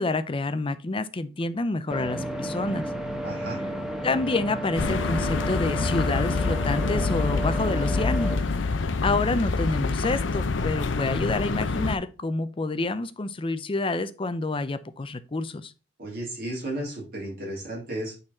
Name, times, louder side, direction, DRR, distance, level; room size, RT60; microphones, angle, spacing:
voice 1, 0.0-2.9 4.0-8.4 9.0-15.7, left 3 dB, 30° left, 0.5 m, -28 dB
sound 1, 1.9-8.4, equal, 5° right, 1.0 m, -32 dB
voice 2, 3.2-3.6 16.0-18.1, right 1 dB, 55° right, 3.5 m, -34 dB
sound 2, 4.8-12.0, left 3 dB, 80° left, 0.6 m, -26 dB
8.8 x 4.1 x 4.2 m
head